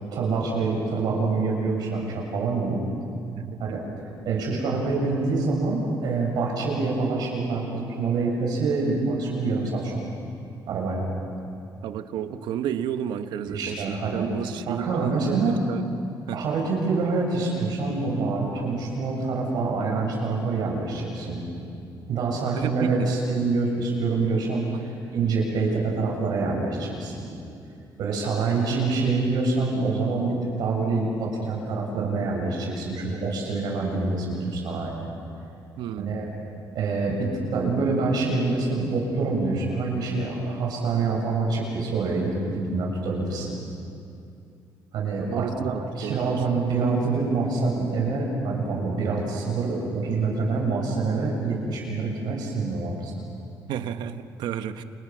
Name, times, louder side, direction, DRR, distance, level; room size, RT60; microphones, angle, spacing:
voice 1, 0.1-2.8 3.6-3.8 4.3-9.9 10.7-11.0 13.5-14.3 14.7-15.6 16.3-21.4 22.1-27.4 28.0-35.1 36.0-36.2 36.7-43.6 44.9-53.1, right 3 dB, 65° right, -1 dB, 7.4 m, -26 dB
voice 2, 3.4-3.8 11.8-15.9 16.3-16.4 22.5-23.1 35.8-36.2 45.2-46.4 53.7-54.8, right 9 dB, 80° right, 10 dB, 1.3 m, -32 dB
29.5 x 29.0 x 6.4 m, 2.6 s
cardioid pair, 180°, 8 cm